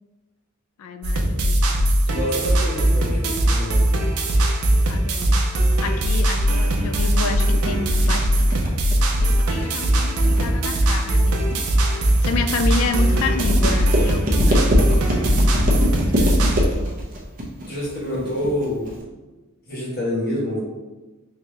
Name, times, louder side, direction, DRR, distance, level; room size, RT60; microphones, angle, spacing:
voice 1, 0.8-1.8 4.9-5.5 5.8-11.4 11.9-17.0 18.2-18.3, left 4 dB, 70° left, 7 dB, 0.4 m, -30 dB
sound 1, 1.0-16.6, right 1 dB, 80° right, 0.6 m, -20 dB
voice 2, 2.1-3.8 17.7-19.0 19.7-20.6, equal, 45° left, -6 dB, 1.4 m, -27 dB
sound 2, 7.0-19.0, equal, 40° right, 0.7 m, -24 dB
3.6 x 2.8 x 3.2 m, 1.1 s
head